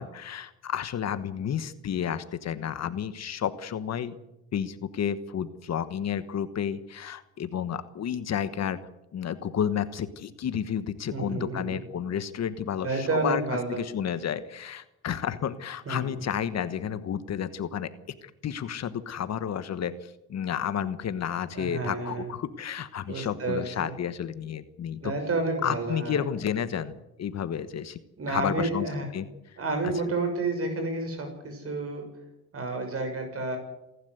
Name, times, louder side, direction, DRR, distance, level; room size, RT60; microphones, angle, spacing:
voice 1, 0.0-4.2 4.5-8.8 9.1-13.4 13.7-17.9 18.2-25.1 25.6-28.0 28.3-28.8 29.1-29.6, left 8 dB, 60° left, 12 dB, 1.3 m, -31 dB
voice 2, 11.1-11.8 12.8-13.9 15.9-16.2 21.5-22.3 23.1-23.9 25.0-26.2 28.2-29.1 29.6-32.2 32.5-33.6, right 3 dB, 50° right, 5 dB, 6.5 m, -30 dB
28.0 x 12.0 x 8.0 m, 0.91 s
cardioid pair, 90°, 30 cm